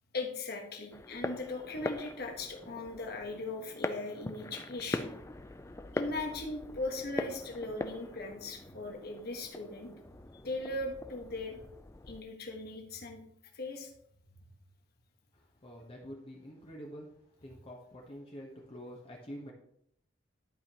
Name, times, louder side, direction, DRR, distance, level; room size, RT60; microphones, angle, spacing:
voice 1, 0.1-5.1 5.9-9.9 10.3-11.6 12.1-13.2 13.5-13.9, left 2 dB, 55° left, 2 dB, 1.5 m, -39 dB
sound 1, 0.9-12.2, left 2 dB, 15° left, 0.4 m, -42 dB
voice 2, 15.3-17.1 17.4-19.5, equal, 30° left, -2 dB, 1.2 m, -47 dB
11.5 x 5.1 x 3.0 m, 0.70 s
head